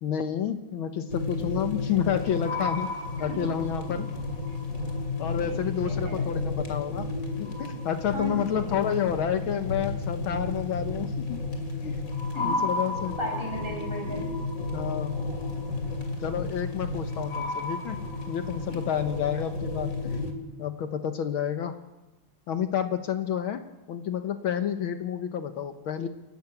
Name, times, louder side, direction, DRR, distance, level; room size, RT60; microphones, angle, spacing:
voice 1, 0.0-4.1 5.2-7.1 7.4-11.4 11.8-12.0 12.4-13.1 14.7-15.2 16.2-20.2 20.6-21.8 22.5-26.1, left 9 dB, 70° left, 8 dB, 1.8 m, -30 dB
sound 1, 1.1-20.3, left 3 dB, 40° left, 2.9 m, -32 dB
voice 2, 5.2-6.3 8.1-8.9 12.3-12.6 13.2-14.3 18.7-18.8, right 1 dB, 25° right, 1 dB, 5.8 m, -36 dB
29.0 x 12.0 x 8.1 m, 1.0 s
omnidirectional pair, 2.4 m